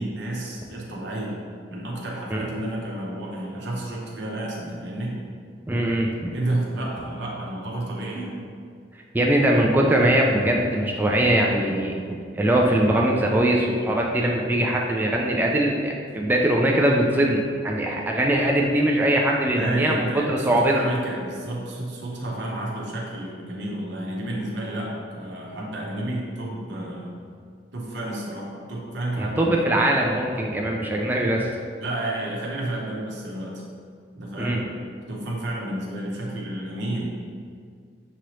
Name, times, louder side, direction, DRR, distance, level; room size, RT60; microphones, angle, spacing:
voice 1, 0.0-1.3 1.7-5.2 6.3-8.4 19.5-27.2 27.7-29.7 31.8-33.5 34.2-34.7 35.1-37.1, right 1 dB, 70° right, -3 dB, 0.9 m, -31 dB
voice 2, 5.7-6.3 9.1-20.7 29.2-31.5 34.4-34.6, right 1 dB, 10° right, -1 dB, 0.3 m, -21 dB
6.0 x 2.9 x 3.1 m, 2.1 s
head